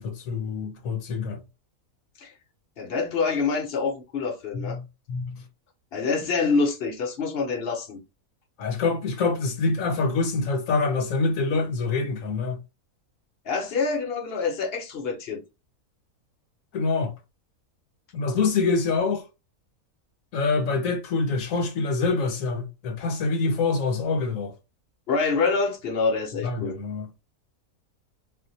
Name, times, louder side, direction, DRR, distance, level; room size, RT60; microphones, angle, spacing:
voice 1, 0.0-1.4 4.5-5.4 8.6-12.6 16.7-17.1 18.1-19.2 20.3-24.5 26.4-27.1, left 4 dB, 70° left, 1.1 m, -26 dB
voice 2, 2.8-4.8 5.9-8.0 13.5-15.4 25.1-26.7, left 4 dB, 55° left, 0.8 m, -26 dB
2.5 x 2.1 x 4.0 m
omnidirectional pair, 1.5 m